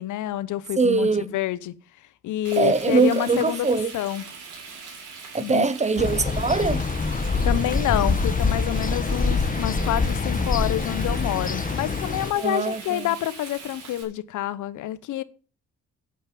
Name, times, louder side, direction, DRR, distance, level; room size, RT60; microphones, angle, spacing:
voice 1, 0.0-1.7 2.2-3.7 3.9-4.2 5.4-5.7 7.4-15.2, left 14 dB, 80° left, 0.8 m, -27 dB
voice 2, 0.8-1.3 2.6-3.9 5.3-6.8 12.4-13.1, right 4 dB, 25° right, 0.8 m, -22 dB
Frying (food), 2.4-14.0, right 5 dB, 80° right, 5.4 m, -41 dB
sound 1, 6.0-12.3, left 4 dB, 25° left, 1.5 m, -25 dB
9.7 x 6.9 x 7.3 m
cardioid pair, 90°, 30 cm